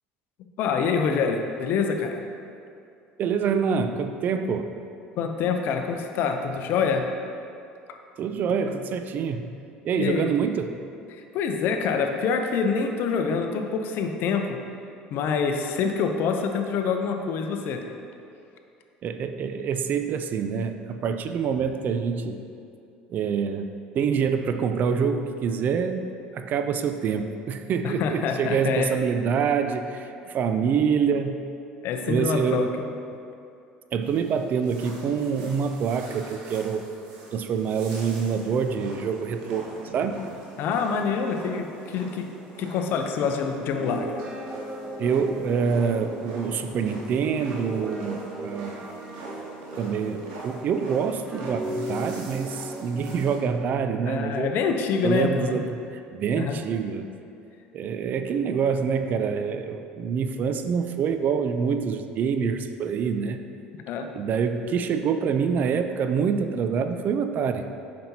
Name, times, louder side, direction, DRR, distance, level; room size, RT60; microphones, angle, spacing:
voice 1, 0.6-2.2 5.2-7.1 10.0-10.2 11.1-14.6 15.1-17.8 27.8-28.9 31.8-32.9 40.6-42.3 42.6-44.2 54.1-55.6 56.4-56.6 63.9-64.1, left 6 dB, 65° left, 5 dB, 0.6 m, -26 dB
voice 2, 3.2-4.7 8.2-9.5 9.8-10.8 19.0-22.5 23.1-26.1 26.3-31.4 32.1-32.8 33.9-36.9 37.3-40.2 45.0-49.0 49.8-54.5 55.0-57.1 57.7-63.4 64.1-67.7, right 6 dB, 50° right, 8 dB, 0.4 m, -26 dB
sound 1, 34.0-53.4, right 1 dB, 85° right, 1.5 m, -44 dB
Guitar, 43.6-50.8 51.3-55.0, right 1 dB, 25° right, 0.8 m, -37 dB
7.5 x 5.9 x 2.8 m, 2.5 s
supercardioid pair, 90°, 4 cm